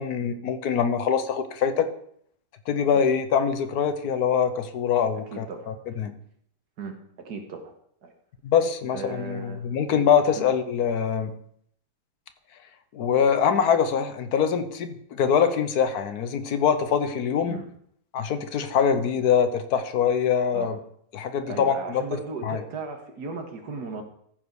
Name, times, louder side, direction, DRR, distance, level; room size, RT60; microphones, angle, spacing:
voice 1, 0.0-1.9 2.7-6.1 8.4-11.3 12.9-17.6 18.1-20.8 21.1-22.0 22.4-22.6, left 7 dB, 75° left, 9 dB, 1.3 m, -24 dB
voice 2, 5.3-5.7 6.8-7.7 8.0-8.1 8.9-9.6 10.4-10.5 17.5-17.7 20.5-20.8 21.5-24.0, right 4 dB, 80° right, 3 dB, 2.0 m, -36 dB
14.5 x 5.1 x 4.7 m, 0.67 s
omnidirectional pair, 1.7 m